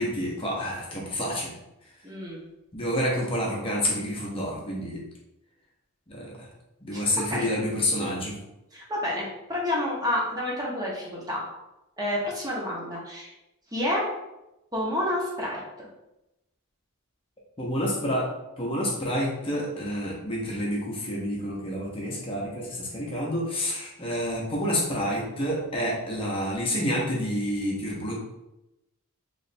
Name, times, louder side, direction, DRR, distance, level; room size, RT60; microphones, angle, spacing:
voice 1, 0.0-1.5 2.7-5.0 6.1-6.5 6.8-8.4 17.6-18.3 18.6-28.1, equal, 25° left, -3 dB, 0.8 m, -28 dB
voice 2, 2.0-2.4 6.9-7.0 7.3-7.5 8.7-11.4 12.0-13.3 13.7-14.1 14.7-15.6, left 1 dB, 15° right, -4 dB, 0.8 m, -29 dB
3.1 x 2.5 x 4.1 m, 0.93 s
head